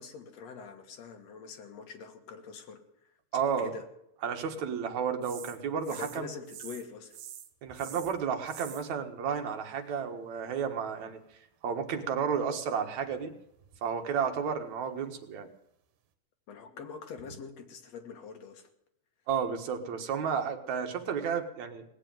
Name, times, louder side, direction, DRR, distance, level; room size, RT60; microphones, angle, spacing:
voice 1, 0.0-2.8 3.6-3.8 5.9-7.2 16.5-18.7, left 6 dB, 55° left, 5 dB, 2.7 m, -44 dB
voice 2, 3.3-3.7 4.2-6.3 7.6-11.2 11.6-13.3 13.8-15.5 19.3-21.8, right 7 dB, 65° right, 4 dB, 2.7 m, -32 dB
sound 1, 5.2-6.2 6.5-6.9 7.1-8.9 13.0-14.0 14.5-14.6, right 10 dB, 80° right, 2.8 m, -47 dB
19.0 x 8.1 x 9.2 m, 0.79 s
omnidirectional pair, 3.8 m